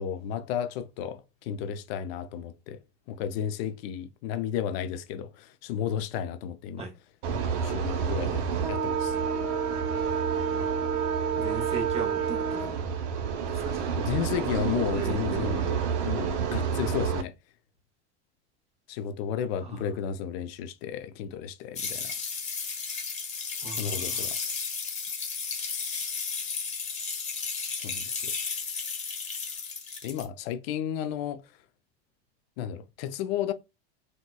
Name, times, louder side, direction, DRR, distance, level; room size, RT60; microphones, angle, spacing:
voice 1, 0.0-2.8 3.1-6.9 7.6-8.4 8.7-9.2 13.9-17.3 18.9-22.1 23.8-24.4 27.8-28.3 30.0-31.4 32.6-33.5, left 9 dB, 60° left, 0.5 m, -33 dB
sound 1, 7.2-17.2, right 7 dB, 70° right, 0.7 m, -29 dB
voice 2, 11.4-12.7 13.5-13.8 14.9-15.5 19.6-19.8 23.6-24.3, right 4 dB, 20° right, 0.6 m, -38 dB
sound 2, 21.7-30.2, left 5 dB, 20° left, 1.0 m, -33 dB
4.2 x 2.2 x 2.2 m
supercardioid pair, 135°, 34 cm